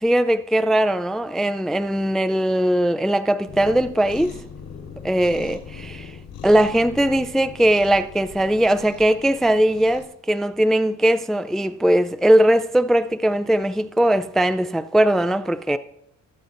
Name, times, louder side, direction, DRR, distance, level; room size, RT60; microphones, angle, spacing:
voice 1, 0.0-4.4 5.0-6.1 6.4-15.8, right 1 dB, ahead, 0.3 m, -20 dB
Cat, 3.4-10.1, left 6 dB, 80° left, 3.8 m, -40 dB
20.0 x 7.6 x 2.6 m
cardioid pair, 90°, 30 cm